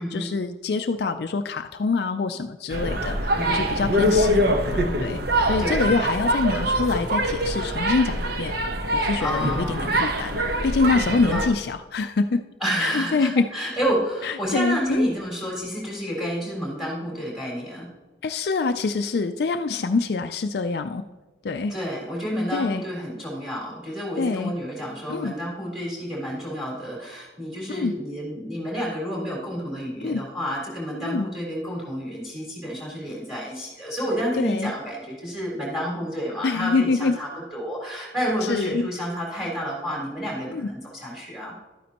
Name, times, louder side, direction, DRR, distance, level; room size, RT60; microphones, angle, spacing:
voice 1, 0.0-8.5 8.9-12.4 12.8-13.5 14.2-15.1 16.2-16.3 18.2-21.0 21.4-21.7 22.5-22.8 24.2-24.5 25.1-25.3 27.7-27.9 30.0-30.2 31.0-31.3 34.4-34.7 36.4-37.1 38.5-38.8 40.5-40.7, left 4 dB, 55° left, 8 dB, 0.4 m, -25 dB
sound 1, 2.7-11.5, equal, 55° right, 1.0 m, -24 dB
voice 2, 3.4-4.1 5.6-5.9 9.2-9.9 11.3-11.4 12.6-17.9 21.7-41.6, equal, ahead, -3 dB, 3.7 m, -30 dB
12.0 x 9.4 x 2.9 m, 1.2 s
head